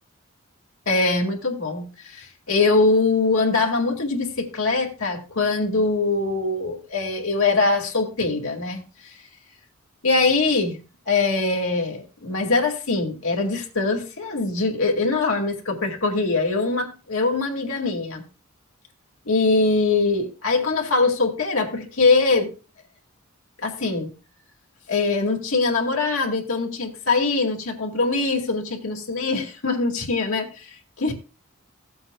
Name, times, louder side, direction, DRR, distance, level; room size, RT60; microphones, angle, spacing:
voice 1, 0.9-9.2 10.0-10.8 11.1-18.2 19.3-22.5 23.6-24.1 24.9-31.1, left 3 dB, 75° left, 0 dB, 2.2 m, -22 dB
16.5 x 7.8 x 2.3 m, 0.31 s
head